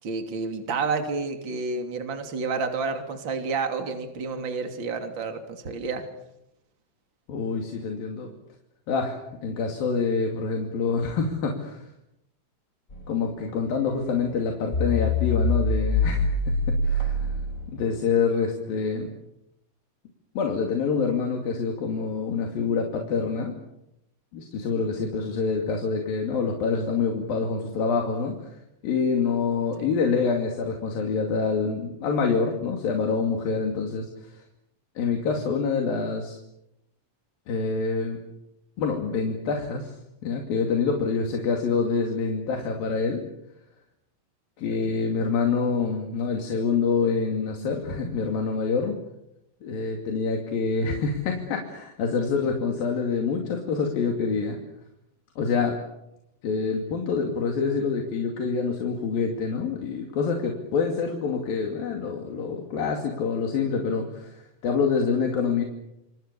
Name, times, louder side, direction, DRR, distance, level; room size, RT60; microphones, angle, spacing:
voice 1, 0.0-6.1 29.8-29.9 44.7-45.0, right 4 dB, 35° right, 5 dB, 3.3 m, -30 dB
voice 2, 7.3-8.3 8.9-11.8 13.1-17.3 17.7-19.1 20.4-23.6 24.3-28.6 28.8-34.4 35.0-36.4 37.5-38.2 38.8-39.9 40.2-43.2 44.6-49.0 49.6-54.6 55.4-55.8 56.4-65.6, left 5 dB, 85° left, 2 dB, 4.4 m, -26 dB
sound 1, 12.9-13.3 13.9-14.0 14.3-14.4 14.7-17.9, left 2 dB, 20° left, 5.5 m, -24 dB
27.5 x 27.5 x 6.9 m, 0.85 s
omnidirectional pair, 4.0 m